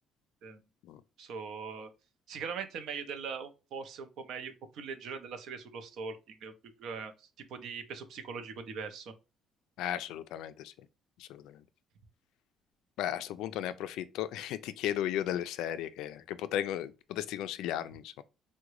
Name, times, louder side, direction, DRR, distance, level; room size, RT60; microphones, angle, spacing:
voice 1, 1.2-1.9 2.3-9.1, right 5 dB, 65° right, 0.6 m, -41 dB
voice 2, 9.8-10.7 11.2-11.6 13.0-18.2, left 11 dB, 85° left, 0.3 m, -35 dB
3.6 x 2.1 x 3.0 m
cardioid pair, 135°, 0 cm